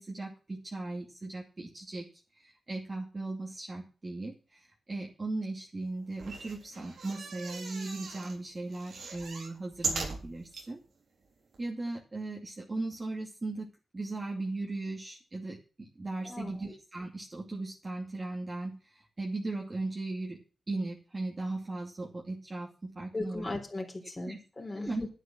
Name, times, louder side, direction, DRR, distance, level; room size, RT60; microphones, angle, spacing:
voice 1, 0.0-2.0 2.4-10.8 11.6-13.7 13.9-20.4 20.7-23.6 24.3-24.4 24.8-25.0, right 2 dB, 30° right, -2 dB, 2.7 m, -37 dB
sound 1, 6.1-8.4 8.7-10.7 11.2-11.3 11.5-11.6, right 4 dB, 80° right, 4.0 m, -39 dB
voice 2, 16.2-16.5 23.1-25.1, left 2 dB, 20° left, 0 dB, 3.9 m, -38 dB
11.0 x 9.4 x 6.1 m, 0.35 s
cardioid pair, 90°, 0 cm